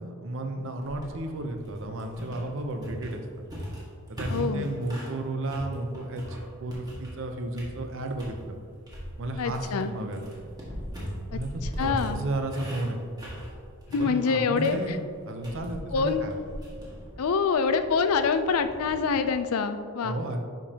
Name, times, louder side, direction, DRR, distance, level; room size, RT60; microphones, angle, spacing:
voice 1, 0.0-3.4 4.1-8.6 9.2-10.5 11.3-11.5 11.8-13.0 13.9-16.4 20.0-20.4, right 1 dB, 60° right, 4 dB, 0.7 m, -33 dB
sound 1, 0.8-5.2 5.5-7.3 7.5-8.4 8.9-19.3, equal, 20° right, 1.6 m, -40 dB
voice 2, 4.3-4.7 9.4-9.9 11.3-12.2 13.9-15.0 15.9-16.3 17.2-20.2, left 5 dB, 75° left, 9 dB, 0.5 m, -26 dB
10.0 x 5.2 x 2.9 m, 2.2 s
head